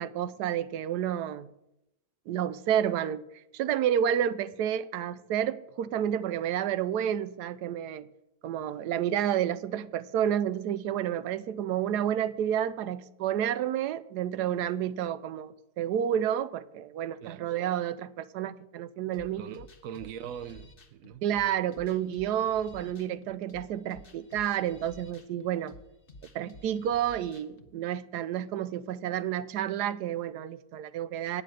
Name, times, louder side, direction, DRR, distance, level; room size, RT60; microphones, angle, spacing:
voice 1, 0.0-1.5 2.3-3.2 3.5-8.1 8.4-19.7 21.2-25.7 26.3-31.4, right 10 dB, 90° right, 1.2 m, -30 dB
sound 1, 19.1-27.7, left 2 dB, 40° left, 1.1 m, -52 dB
voice 2, 19.4-21.2, right 9 dB, 65° right, 0.9 m, -42 dB
9.5 x 6.6 x 8.7 m
omnidirectional pair, 1.7 m